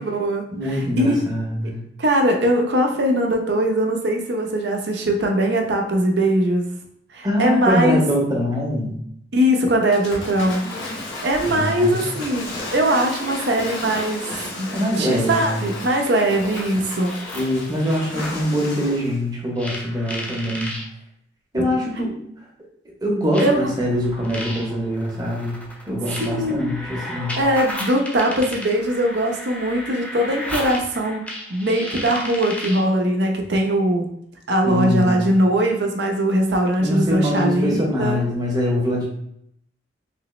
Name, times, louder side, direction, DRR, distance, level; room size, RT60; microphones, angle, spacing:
voice 1, 0.0-1.2 2.0-6.6 7.1-8.0 9.3-14.3 14.6-17.2 21.6-21.7 23.4-23.7 26.2-26.7 27.4-34.1 34.5-38.2, right 1 dB, 65° right, 2 dB, 0.6 m, -21 dB
voice 2, 0.5-1.8 7.2-9.0 11.4-12.1 14.7-15.6 17.3-20.7 21.5-22.2 22.8-25.6 25.9-27.4 34.6-35.3 36.8-39.1, equal, 20° right, -2 dB, 0.8 m, -23 dB
Waves surf / Splash splatter, 9.9-19.2, left 2 dB, 85° left, 1.1 m, -33 dB
sound 1, 16.4-18.4 19.6-20.8 21.9-22.0 23.3-32.9, left 1 dB, 10° left, 0.5 m, -34 dB
3.3 x 3.0 x 3.1 m, 0.73 s
head